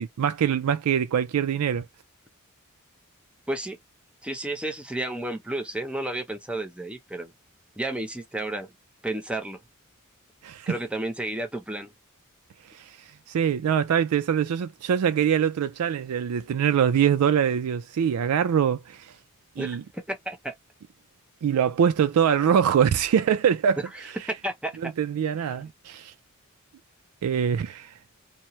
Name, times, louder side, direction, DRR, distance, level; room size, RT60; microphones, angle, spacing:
voice 1, 0.0-1.8 10.4-10.7 12.7-19.1 19.6-19.8 21.4-23.8 24.8-26.1 27.2-27.9, right 8 dB, 90° right, 0.4 m, -24 dB
voice 2, 3.5-3.8 4.2-7.3 7.8-8.7 9.0-9.6 10.7-11.9 19.6-20.5 23.9-24.9 25.5-25.6, right 1 dB, 5° right, 0.6 m, -32 dB
2.8 x 2.1 x 2.9 m
head